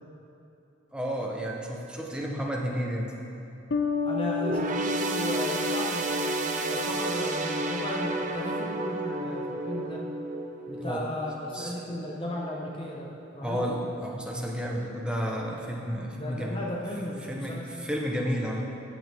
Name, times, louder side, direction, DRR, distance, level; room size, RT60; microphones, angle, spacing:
voice 1, 0.9-3.2 10.8-11.1 11.5-11.7 13.4-16.6 17.3-18.6, equal, 5° right, -1 dB, 0.8 m, -31 dB
sound 1, 3.7-7.1, left 5 dB, 55° left, 0.5 m, -32 dB
voice 2, 4.0-10.0 10.7-13.7 16.1-17.7, left 1 dB, 25° left, -2 dB, 0.8 m, -35 dB
sound 2, 4.4-12.1 12.5-12.7 13.5-13.6, right 2 dB, 40° right, 0.6 m, -31 dB
14.0 x 6.7 x 3.4 m, 3.0 s
head